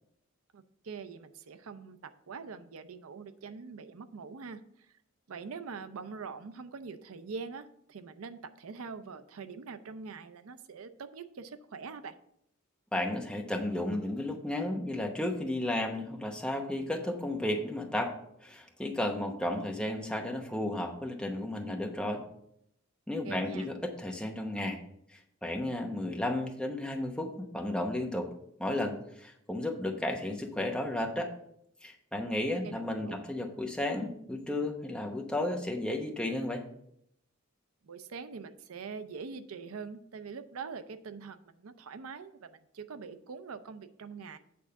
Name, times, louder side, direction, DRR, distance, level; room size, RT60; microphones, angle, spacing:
voice 1, 0.5-2.0 2.3-4.9 5.3-12.1 23.2-23.7 32.6-33.2 37.8-44.4, right 5 dB, 85° right, 11 dB, 0.5 m, -44 dB
voice 2, 12.9-18.1 18.4-22.2 23.1-24.8 25.1-28.3 28.6-31.3 31.8-36.6, left 1 dB, 5° left, 2 dB, 0.9 m, -33 dB
8.5 x 3.6 x 6.7 m, 0.72 s
head